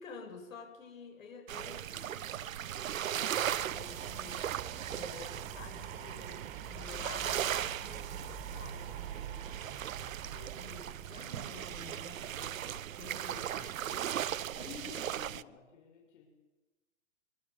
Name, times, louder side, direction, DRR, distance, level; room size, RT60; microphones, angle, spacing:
voice 1, 0.0-4.4 4.9-14.3 14.5-15.5, left 5 dB, 85° left, 3 dB, 8.0 m, -51 dB
sound 1, 1.5-15.4, right 10 dB, 90° right, 1.0 m, -38 dB
sound 2, 3.3-12.0, right 7 dB, 20° right, 2.1 m, -46 dB
voice 2, 14.8-16.3, left 5 dB, 65° left, 1 dB, 6.6 m, -61 dB
25.0 x 24.0 x 7.2 m, 1.1 s
hypercardioid pair, 160°, 39 cm